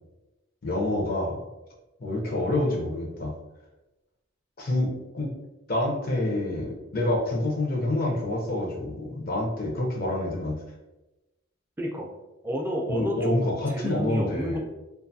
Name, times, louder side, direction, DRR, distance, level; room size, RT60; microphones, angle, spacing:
voice 1, 0.6-1.4 2.0-3.3 4.6-5.3 5.7-10.6 12.9-14.6, left 1 dB, 45° left, -1 dB, 0.6 m, -27 dB
voice 2, 11.8-12.1 12.4-14.6, equal, 10° right, -1 dB, 0.3 m, -30 dB
2.5 x 2.3 x 2.6 m, 1.0 s
head